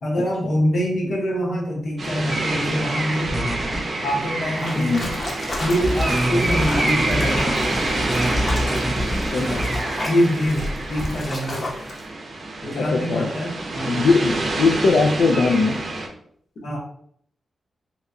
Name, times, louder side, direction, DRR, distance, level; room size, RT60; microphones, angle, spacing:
voice 1, 0.0-3.4 4.0-5.2 5.6-7.6 10.1-11.7 12.6-14.0 16.6-16.8, equal, 65° left, -2 dB, 1.0 m, -24 dB
sound 1, 2.0-16.1, right 2 dB, 50° right, 0.6 m, -27 dB
sound 2, 3.3-3.8 5.8-9.8, equal, 5° left, 0.4 m, -25 dB
sound 3, 4.6-12.0, left 1 dB, 35° left, 0.8 m, -32 dB
voice 2, 4.8-5.1 9.3-9.6 12.8-13.3 13.9-15.8, left 4 dB, 80° left, 3 dB, 0.3 m, -20 dB
2.8 x 2.2 x 3.6 m, 0.65 s
wide cardioid pair, 120°, 0 cm